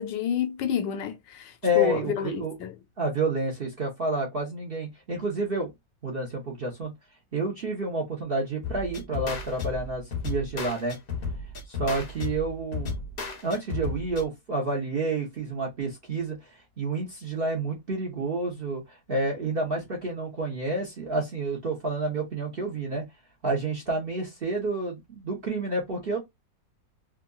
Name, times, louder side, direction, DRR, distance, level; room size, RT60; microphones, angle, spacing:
voice 1, 0.0-2.7, left 8 dB, 80° left, 1.3 m, -30 dB
voice 2, 1.6-2.5 3.0-5.7 6.0-6.9 7.3-11.0 11.7-12.9 13.4-23.0 23.4-26.2, right 2 dB, 45° right, 0.8 m, -29 dB
sound 1, 8.6-14.2, left 4 dB, 50° left, 0.7 m, -34 dB
3.6 x 2.6 x 2.3 m
omnidirectional pair, 2.0 m